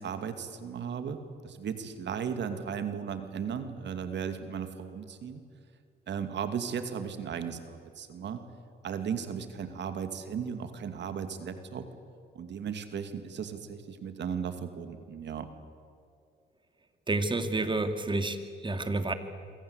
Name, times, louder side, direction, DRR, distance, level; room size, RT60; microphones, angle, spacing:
voice 1, 0.0-5.4 6.1-8.4 8.8-11.9 12.3-15.5, right 7 dB, 65° right, 8 dB, 2.6 m, -36 dB
voice 2, 17.1-19.1, right 2 dB, 25° right, 8 dB, 2.8 m, -29 dB
27.0 x 24.0 x 8.3 m, 2.3 s
cardioid pair, 90°, 20 cm